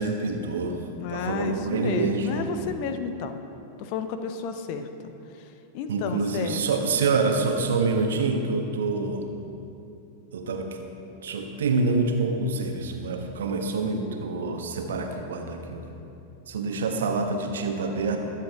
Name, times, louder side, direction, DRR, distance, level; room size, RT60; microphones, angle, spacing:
voice 1, 0.0-0.8 1.1-2.5 5.9-9.3 10.3-10.8 11.2-15.8 16.5-18.2, right 3 dB, 65° right, 4 dB, 1.3 m, -26 dB
voice 2, 1.0-3.4 3.8-4.9 5.7-6.9, left 6 dB, 45° left, 8 dB, 0.8 m, -32 dB
22.0 x 7.5 x 3.6 m, 2.8 s
figure-of-eight pair, 90°, 0 cm